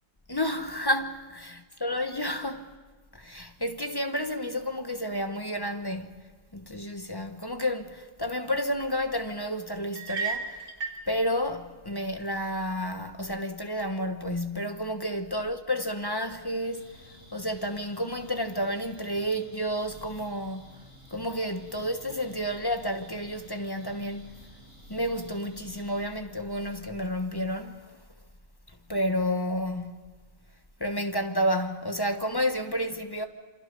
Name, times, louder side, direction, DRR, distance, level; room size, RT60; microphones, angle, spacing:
voice 1, 0.3-2.7 3.1-6.1 6.5-10.6 11.1-16.9 17.3-20.7 21.1-24.3 24.9-27.8 28.9-29.9 30.8-33.3, equal, 20° left, 1.1 m, -30 dB
sound 1, 10.0-11.1, right 5 dB, 90° right, 3.9 m, -33 dB
sound 2, 16.6-26.1, equal, 65° right, 8.0 m, -53 dB
27.5 x 26.5 x 5.5 m
omnidirectional pair, 1.5 m